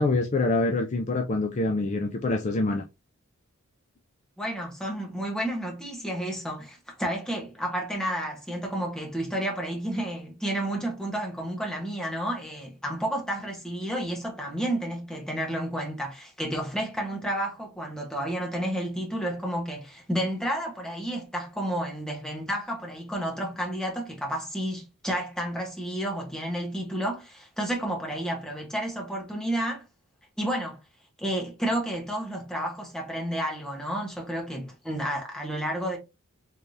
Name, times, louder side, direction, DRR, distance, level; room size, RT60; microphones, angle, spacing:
voice 1, 0.0-2.8, left 2 dB, 35° left, 0.4 m, -25 dB
voice 2, 4.4-29.8 30.4-30.8 31.2-36.0, right 1 dB, 5° left, 1.1 m, -31 dB
3.4 x 3.3 x 2.7 m
head